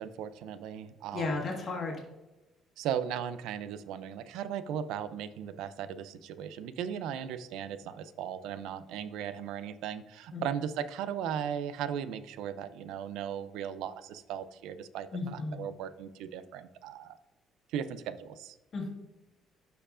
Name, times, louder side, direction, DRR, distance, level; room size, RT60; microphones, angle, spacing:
voice 1, 0.0-1.4 2.8-17.2 17.7-18.6, right 9 dB, 85° right, 13 dB, 0.4 m, -37 dB
voice 2, 1.1-2.0 10.3-10.4 15.1-15.6 18.7-18.9, left 3 dB, 40° left, 0 dB, 1.5 m, -34 dB
12.0 x 4.6 x 2.5 m, 1.0 s
cardioid pair, 150°, 0 cm